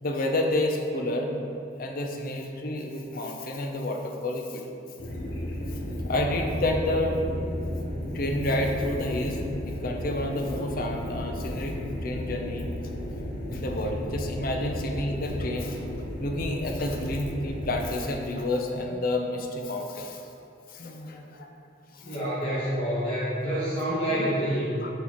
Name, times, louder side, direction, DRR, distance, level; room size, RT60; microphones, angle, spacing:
voice 1, 0.0-1.5 1.8-4.6 5.7-5.8 6.1-7.1 8.1-9.4 9.6-12.7 13.5-15.9 16.2-20.2 20.7-21.5 21.9-22.2 23.8-23.9 24.8-24.9, left 1 dB, 50° left, 2 dB, 0.6 m, -30 dB
sound 1, 5.0-17.9, left 1 dB, 70° left, 1.0 m, -33 dB
voice 2, 22.0-24.9, equal, 30° left, -10 dB, 1.2 m, -27 dB
6.2 x 5.4 x 3.0 m, 2.5 s
head